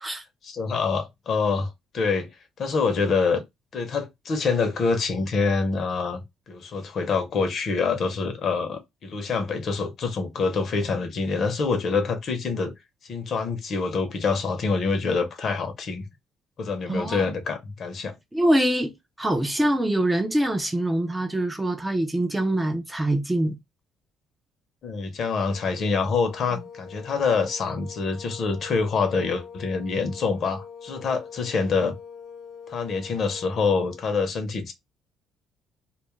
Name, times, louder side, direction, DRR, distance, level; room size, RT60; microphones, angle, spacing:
voice 1, 0.4-2.3 2.6-3.4 3.7-12.7 13.1-16.0 16.6-18.1 24.8-31.9 32.7-34.7, left 4 dB, 50° left, 0.6 m, -26 dB
voice 2, 16.9-17.2 18.3-23.6, right 1 dB, 10° right, 0.4 m, -24 dB
sound 1, 25.4-34.1, left 6 dB, 85° left, 0.9 m, -43 dB
2.3 x 2.1 x 3.0 m
cardioid pair, 130°, 0 cm